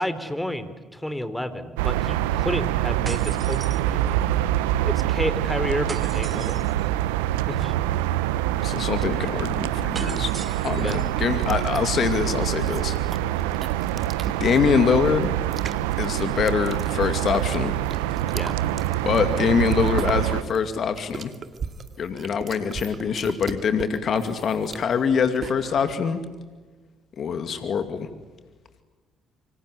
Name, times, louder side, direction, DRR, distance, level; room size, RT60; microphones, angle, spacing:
voice 1, 0.0-4.3 4.8-6.6 7.5-7.7 10.8-11.0 18.3-18.6, left 1 dB, 5° left, 12 dB, 3.8 m, -31 dB
sound 1, 1.8-20.4, right 13 dB, 85° right, 1.0 m, -25 dB
sound 2, 3.1-4.3 5.9-6.9 9.9-11.1, right 4 dB, 35° right, 2.5 m, -40 dB
voice 2, 8.6-10.3 10.6-13.0 14.4-15.3 16.0-17.7 19.0-21.3 22.0-26.2 27.2-28.1, left 6 dB, 55° left, 8 dB, 2.3 m, -24 dB
sound 3, 8.9-25.9, right 6 dB, 50° right, 2.4 m, -39 dB
27.5 x 25.0 x 8.5 m, 1.3 s
hypercardioid pair, 55°, 0 cm